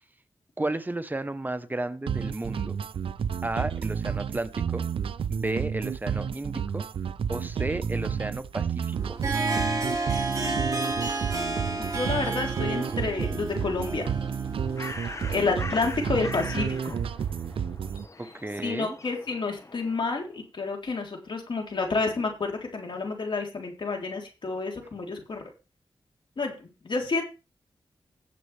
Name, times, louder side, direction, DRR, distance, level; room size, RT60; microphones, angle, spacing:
voice 1, 0.6-2.8 3.4-4.8 5.3-6.8 7.3-9.2 18.2-19.0, right 2 dB, 20° right, 1.0 m, -33 dB
sound 1, 2.1-18.1, right 7 dB, 90° right, 0.5 m, -31 dB
Harp, 8.9-16.7, right 2 dB, 40° right, 3.9 m, -32 dB
voice 2, 11.8-14.1 15.2-16.9 18.6-25.4 26.4-27.2, left 3 dB, 60° left, 3.6 m, -29 dB
Bird, 14.3-20.3, left 2 dB, 35° left, 1.4 m, -42 dB
18.0 x 7.0 x 3.4 m
wide cardioid pair, 80°, 9 cm